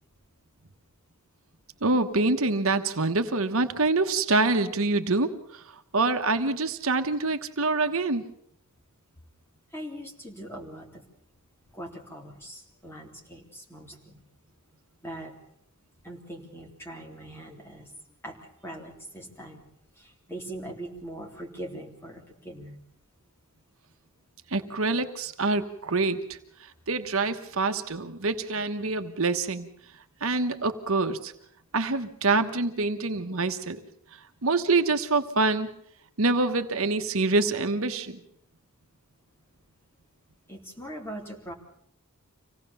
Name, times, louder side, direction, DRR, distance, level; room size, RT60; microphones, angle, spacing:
voice 1, 1.8-5.6 5.9-8.2 24.5-26.4 26.9-29.7 30.2-31.3 31.7-33.8 34.4-35.7 36.2-38.2, right 3 dB, 65° right, 7 dB, 1.2 m, -26 dB
voice 2, 9.7-11.0 11.7-14.2 15.0-15.3 16.0-17.9 18.2-19.6 20.0-22.8 40.5-41.5, right 1 dB, 10° left, 0 dB, 3.3 m, -41 dB
26.0 x 17.5 x 7.0 m, 0.70 s
head